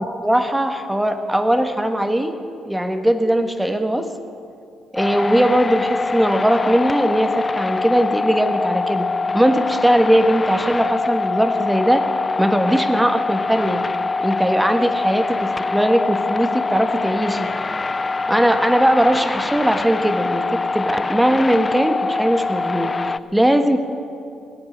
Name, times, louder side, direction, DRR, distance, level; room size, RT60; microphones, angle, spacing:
voice 1, 0.0-2.3 2.6-4.1 4.9-9.1 9.3-12.0 12.4-13.8 14.2-17.5 18.3-20.4 20.7-22.9 23.3-23.8, equal, 5° right, 7 dB, 1.3 m, -19 dB
sound 1, 5.0-23.2, left 3 dB, 25° left, 0.4 m, -24 dB
18.0 x 8.4 x 9.5 m, 2.5 s
cardioid pair, 90°, 0 cm